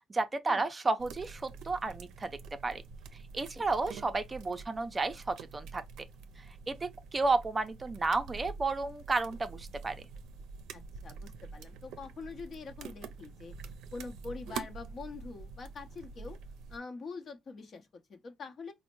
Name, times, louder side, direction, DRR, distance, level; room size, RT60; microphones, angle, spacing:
voice 1, 0.1-2.3 2.6-2.8 3.3-5.8 6.7-10.0, right 3 dB, 25° right, 0.4 m, -32 dB
sound 1, 1.0-16.8, right 5 dB, 85° right, 0.4 m, -46 dB
voice 2, 10.7-13.5 13.9-16.4 16.7-18.7, left 4 dB, 50° left, 0.8 m, -44 dB
4.2 x 2.1 x 3.0 m
cardioid pair, 90°, 0 cm